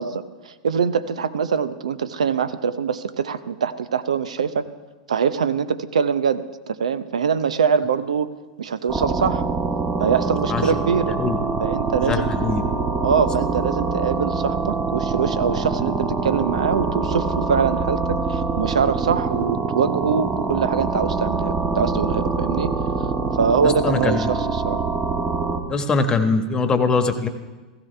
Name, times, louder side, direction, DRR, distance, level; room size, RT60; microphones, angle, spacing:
voice 1, 0.0-4.6 5.1-8.3 8.6-9.4 10.0-11.2 11.6-12.3 13.0-22.7 23.3-24.8, right 6 dB, 90° right, 14 dB, 0.7 m, -23 dB
sound 1, 8.9-25.6, right 4 dB, 20° right, 1.5 m, -24 dB
voice 2, 12.1-12.6 23.6-24.3 25.7-27.3, left 4 dB, 20° left, 7 dB, 1.3 m, -22 dB
16.5 x 15.0 x 3.4 m, 1.3 s
hypercardioid pair, 110°, 3 cm